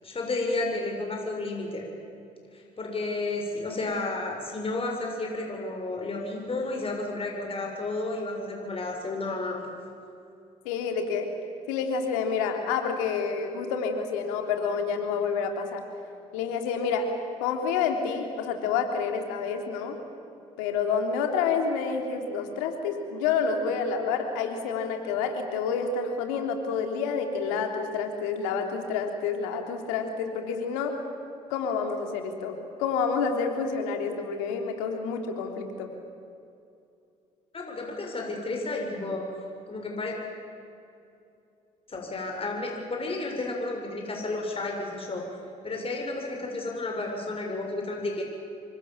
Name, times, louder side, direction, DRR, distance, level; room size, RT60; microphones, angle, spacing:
voice 1, 0.0-1.8 2.5-9.6 37.5-39.3 39.7-40.1 41.9-45.3 45.6-48.2, left 2 dB, 35° left, 1 dB, 6.9 m, -32 dB
voice 2, 10.6-11.3 11.7-15.8 16.3-17.1 17.4-20.0 20.6-31.0 31.5-35.9, left 5 dB, 85° left, 4 dB, 3.4 m, -28 dB
29.5 x 24.5 x 7.5 m, 2.6 s
hypercardioid pair, 60°, 17 cm